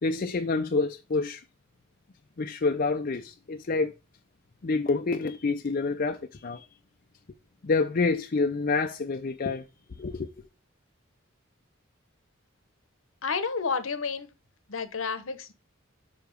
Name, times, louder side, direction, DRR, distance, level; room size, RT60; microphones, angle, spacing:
voice 1, 0.0-1.4 2.4-3.9 4.6-6.6 7.6-9.6 10.0-10.3, left 3 dB, 45° left, 0.5 m, -27 dB
voice 2, 13.2-14.3 14.7-15.5, left 5 dB, 70° left, 0.9 m, -30 dB
5.8 x 4.8 x 5.0 m
head